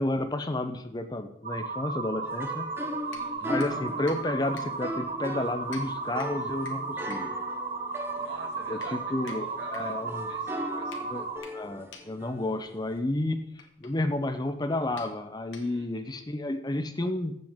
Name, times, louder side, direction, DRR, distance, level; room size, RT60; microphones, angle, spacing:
voice 1, 0.0-2.7 3.4-7.3 8.7-9.5 9.7-10.3 11.1-11.2 11.5-13.4 13.8-17.4, left 1 dB, 20° left, 9 dB, 0.6 m, -31 dB
sound 1, 1.4-11.4, right 4 dB, 35° right, 1.0 m, -35 dB
sound 2, 2.2-13.0, equal, 10° right, 0.9 m, -39 dB
sound 3, 3.1-16.1, left 5 dB, 75° left, 1.6 m, -52 dB
voice 2, 3.1-3.6 8.1-11.3 15.5-16.1, right 2 dB, 65° right, 4 dB, 1.9 m, -48 dB
14.5 x 7.9 x 3.6 m, 0.75 s
head